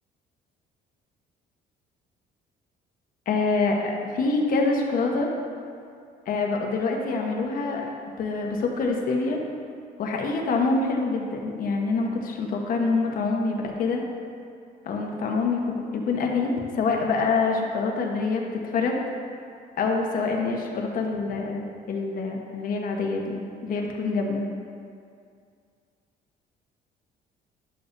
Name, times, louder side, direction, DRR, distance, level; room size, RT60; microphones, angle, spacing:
voice 1, 3.3-5.3 6.3-7.8 8.2-9.4 10.0-14.0 14.8-19.0 19.8-24.4, left 3 dB, 55° left, 1 dB, 1.2 m, -26 dB
11.0 x 7.1 x 2.7 m, 2.3 s
cardioid pair, 110°, 17 cm